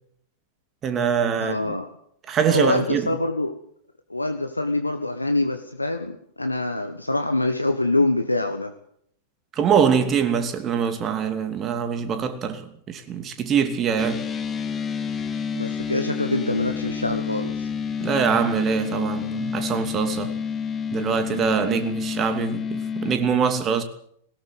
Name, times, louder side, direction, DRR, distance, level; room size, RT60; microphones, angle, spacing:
voice 1, 0.8-1.8 2.3-3.1 9.5-14.2 18.0-20.3 20.9-23.8, right 7 dB, 30° right, 2.8 m, -23 dB
voice 2, 1.4-1.9 2.5-3.6 4.1-8.7 15.5-17.7, left 2 dB, 90° left, 1.4 m, -25 dB
sound 1, 14.0-23.1, left 6 dB, 20° left, 2.4 m, -29 dB
19.5 x 18.0 x 8.1 m
figure-of-eight pair, 95°, 0 cm